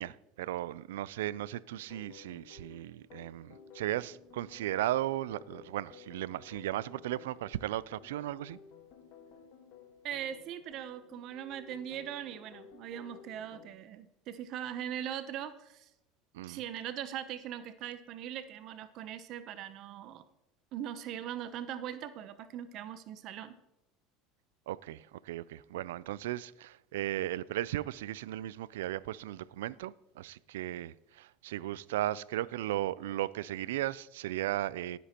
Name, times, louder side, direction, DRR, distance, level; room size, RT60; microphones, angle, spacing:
voice 1, 0.0-8.6 16.3-16.6 24.7-35.0, right 14 dB, 85° right, 0.3 m, -36 dB
sound 1, 1.7-13.7, left 6 dB, 60° left, 1.4 m, -55 dB
voice 2, 10.0-15.9 16.5-20.2 20.7-23.5, right 10 dB, 55° right, 0.7 m, -40 dB
18.5 x 8.2 x 2.9 m
supercardioid pair, 90°, 0 cm